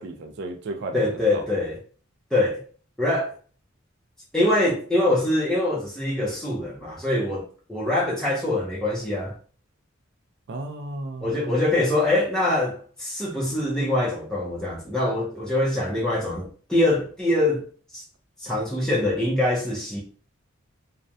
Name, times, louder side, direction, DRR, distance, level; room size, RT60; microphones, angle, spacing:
voice 1, 0.0-1.4 10.5-11.5, right 2 dB, 55° right, 0.4 m, -34 dB
voice 2, 0.9-1.8 2.3-2.6 3.0-3.3 4.3-9.3 11.2-17.7 17.9-18.0 18.4-20.0, left 1 dB, 5° left, 0.5 m, -24 dB
2.4 x 2.1 x 2.6 m
head